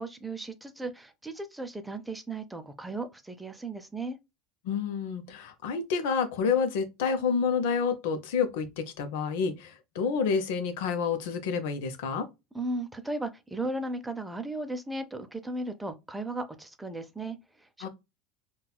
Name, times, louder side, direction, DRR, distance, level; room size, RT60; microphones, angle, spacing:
voice 1, 0.0-4.2 12.5-17.9, right 2 dB, 5° right, 0.5 m, -36 dB
voice 2, 4.6-12.2 17.8-17.9, left 6 dB, 80° left, 0.7 m, -29 dB
4.0 x 2.3 x 2.2 m
supercardioid pair, 120°, 0 cm